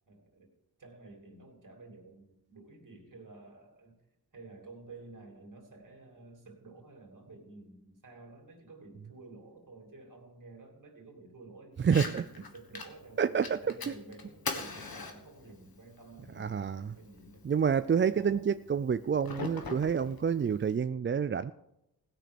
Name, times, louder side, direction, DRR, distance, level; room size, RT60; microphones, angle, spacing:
voice 1, 0.1-0.5 0.8-4.0 4.3-13.3 13.6-17.5 18.0-18.5, right 3 dB, 55° right, 2 dB, 3.0 m, -51 dB
Fire, 11.8-20.8, left 4 dB, 65° left, 1.6 m, -44 dB
voice 2, 11.8-12.2 13.2-13.6 13.9-14.0 16.4-16.9 17.4-21.5, right 7 dB, 30° right, 13 dB, 0.4 m, -28 dB
16.5 x 6.1 x 6.6 m, 0.85 s
cardioid pair, 60°, 38 cm